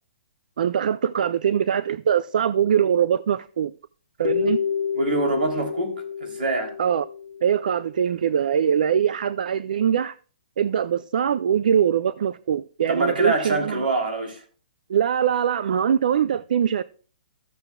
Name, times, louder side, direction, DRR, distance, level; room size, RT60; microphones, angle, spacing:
voice 1, 0.6-3.7 4.2-4.6 6.8-7.0 7.4-10.1 10.6-13.9 14.9-16.8, right 8 dB, 60° right, 0.3 m, -22 dB
sound 1, 4.2-8.0, left 7 dB, 60° left, 0.9 m, -29 dB
voice 2, 4.9-5.9 6.2-6.7 12.9-14.4, right 2 dB, 85° right, 3.1 m, -24 dB
14.5 x 6.9 x 2.2 m
hypercardioid pair, 170°, 5 cm